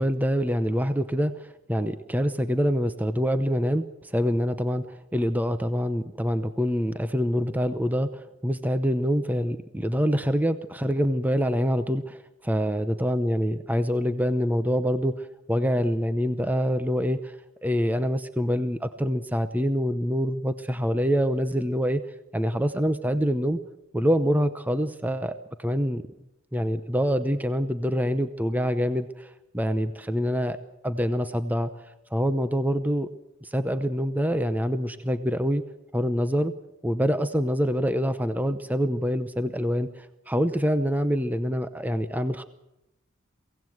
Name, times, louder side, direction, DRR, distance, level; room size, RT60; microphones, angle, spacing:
voice 1, 0.0-17.3 17.6-22.0 22.3-23.6 23.9-26.0 26.5-30.6 30.8-31.7 32.1-33.1 33.4-35.6 35.9-36.5 36.8-42.4, equal, 10° right, 11 dB, 0.8 m, -25 dB
23.5 x 17.0 x 7.9 m, 0.89 s
head